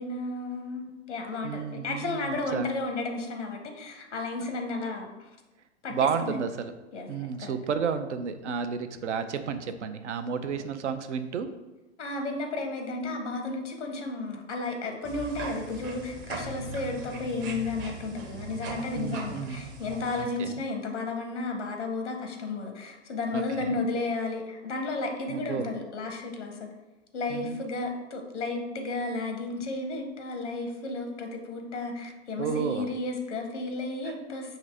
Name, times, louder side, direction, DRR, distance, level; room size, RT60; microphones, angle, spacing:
voice 1, 0.0-5.3 5.8-6.4 6.9-7.5 12.0-26.7 27.1-34.6, left 3 dB, 90° left, 4 dB, 0.7 m, -33 dB
voice 2, 1.4-2.7 5.9-6.7 7.1-11.5 18.9-19.7 20.2-20.6 23.3-23.8 25.3-25.7 27.3-27.6 32.4-32.9 34.0-34.2, right 6 dB, 85° right, 9 dB, 0.5 m, -32 dB
sound 1, 15.0-20.2, right 2 dB, 35° right, 0.8 m, -39 dB
4.8 x 2.7 x 3.3 m, 1.1 s
hypercardioid pair, 100°, 34 cm